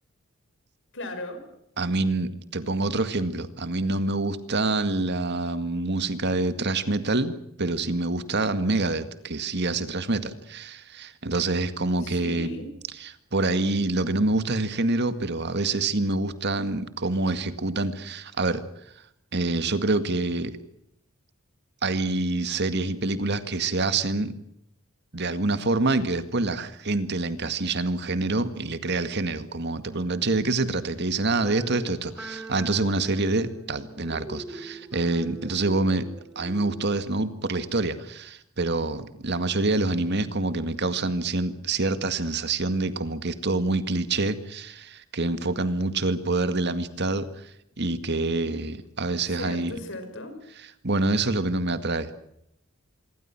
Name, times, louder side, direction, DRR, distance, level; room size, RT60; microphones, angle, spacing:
voice 1, 0.9-1.5 12.0-12.7 49.4-50.4, left 2 dB, 60° left, 8 dB, 6.2 m, -37 dB
voice 2, 1.8-12.6 13.0-18.6 19.3-20.6 21.8-24.3 25.1-36.1 36.4-47.3 47.8-49.8 50.8-52.1, right 2 dB, 55° right, 11 dB, 2.1 m, -26 dB
sound 1, 31.4-37.0, right 2 dB, 5° right, 3.0 m, -42 dB
26.5 x 23.5 x 6.1 m, 0.76 s
head